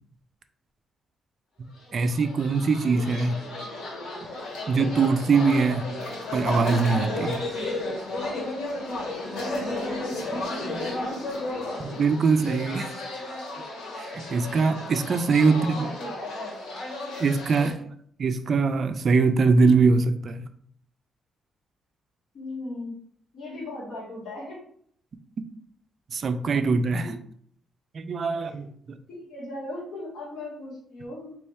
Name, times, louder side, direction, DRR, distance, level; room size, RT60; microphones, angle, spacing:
voice 1, 1.6-3.4 4.7-5.9 6.3-7.4 11.8-13.0 14.0-15.9 17.2-17.8 18.2-20.4 26.1-27.1 27.9-29.0, right 4 dB, 45° right, 0.3 m, -22 dB
sound 1, 1.9-17.7, left 2 dB, 85° left, 1.5 m, -33 dB
voice 2, 10.0-10.4 15.4-17.2 22.3-23.0 23.3-24.6 27.0-27.1 28.3-28.7 29.1-31.3, left 2 dB, 60° left, 1.6 m, -38 dB
4.1 x 3.1 x 3.4 m
cardioid pair, 130°, 0 cm